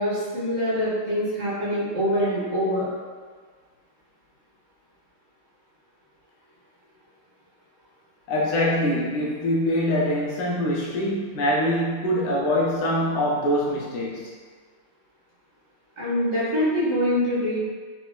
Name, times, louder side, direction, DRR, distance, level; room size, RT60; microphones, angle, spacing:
voice 1, 0.0-2.9 16.0-17.6, equal, 45° right, -10 dB, 0.5 m, -24 dB
voice 2, 8.3-14.3, equal, 70° left, -4 dB, 1.2 m, -24 dB
4.0 x 2.2 x 2.2 m, 1.6 s
omnidirectional pair, 2.1 m